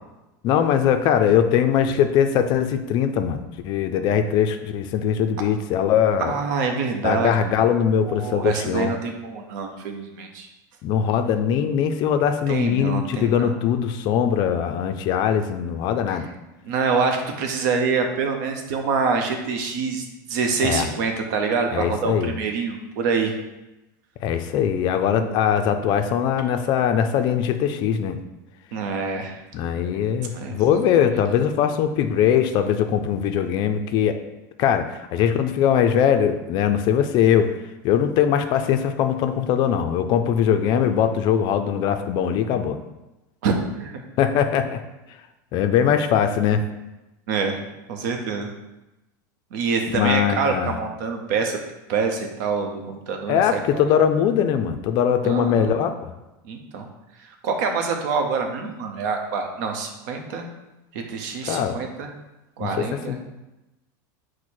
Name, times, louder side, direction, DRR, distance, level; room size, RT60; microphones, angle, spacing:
voice 1, 0.4-6.3 7.0-8.9 10.8-16.3 20.6-20.9 21.7-22.3 24.2-28.2 29.5-34.2 34.6-37.5 37.8-42.8 44.2-44.8 45.5-46.6 49.9-50.7 53.3-56.1 61.5-61.7 62.6-63.3, left 8 dB, 45° left, 8 dB, 0.4 m, -21 dB
voice 2, 6.2-7.3 8.0-10.5 12.5-13.5 16.6-23.4 25.2-25.4 28.7-29.4 30.3-30.8 43.4-44.0 47.3-47.6 47.9-48.5 49.5-51.6 51.9-53.8 55.2-55.7 56.4-56.9 57.4-60.5 60.9-62.1 62.6-63.2, right 5 dB, 70° right, 4 dB, 0.7 m, -26 dB
4.6 x 2.1 x 4.3 m, 0.99 s
supercardioid pair, 130°, 10 cm